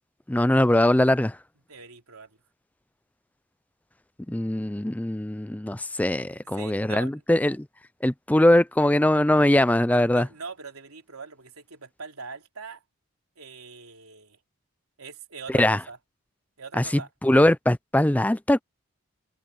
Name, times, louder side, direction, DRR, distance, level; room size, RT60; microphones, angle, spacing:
voice 1, 0.3-1.3 4.3-7.6 8.0-10.3 15.5-15.8 16.8-16.9 17.2-18.6, left 1 dB, 5° left, 0.4 m, -21 dB
voice 2, 1.7-2.4 6.5-7.2 9.9-12.8 13.4-14.4 15.0-16.0 16.6-17.1, right 4 dB, 85° right, 3.5 m, -42 dB
open air
head